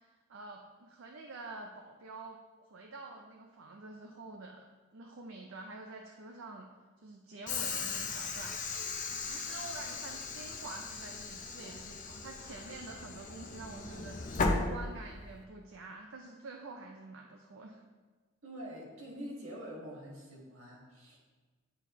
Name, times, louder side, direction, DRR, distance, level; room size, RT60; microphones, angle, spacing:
voice 1, 0.0-4.6 4.9-6.7 7.0-8.7 9.2-17.8, right 3 dB, 70° right, 2 dB, 0.5 m, -48 dB
Train / Sliding door, 7.5-15.4, left 3 dB, 40° left, 0.6 m, -37 dB
voice 2, 18.4-21.2, equal, 85° right, -3 dB, 1.8 m, -45 dB
9.8 x 4.2 x 3.0 m, 1.3 s
head